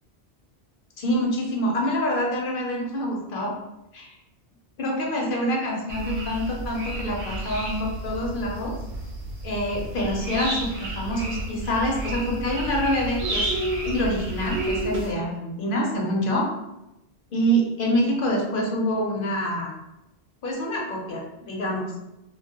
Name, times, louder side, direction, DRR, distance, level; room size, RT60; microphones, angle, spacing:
voice 1, 1.0-3.5 3.9-4.1 4.8-8.7 9.4-13.5 13.8-16.5 17.3-19.7 20.4-21.9, equal, 60° left, -1 dB, 0.7 m, -26 dB
sound 1, 5.9-15.1, right 1 dB, 75° right, 0.8 m, -31 dB
2.2 x 2.0 x 2.8 m, 0.91 s
omnidirectional pair, 1.1 m